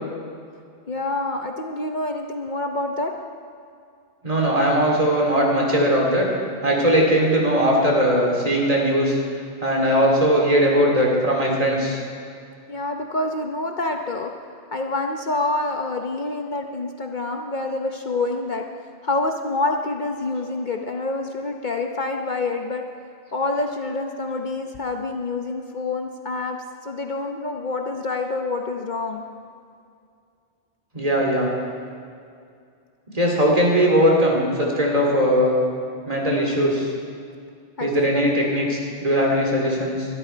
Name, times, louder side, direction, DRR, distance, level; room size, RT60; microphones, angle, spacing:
voice 1, 0.9-3.1 12.7-14.3 14.7-18.6 19.0-22.8 23.3-26.6 26.8-29.2 37.8-38.2, left 2 dB, 50° left, 3 dB, 1.0 m, -27 dB
voice 2, 4.2-6.3 6.6-9.2 9.6-12.0 30.9-31.5 33.1-35.6 36.1-36.9 37.8-40.1, equal, 35° right, -2 dB, 3.2 m, -19 dB
22.5 x 13.0 x 4.5 m, 2.3 s
omnidirectional pair, 1.1 m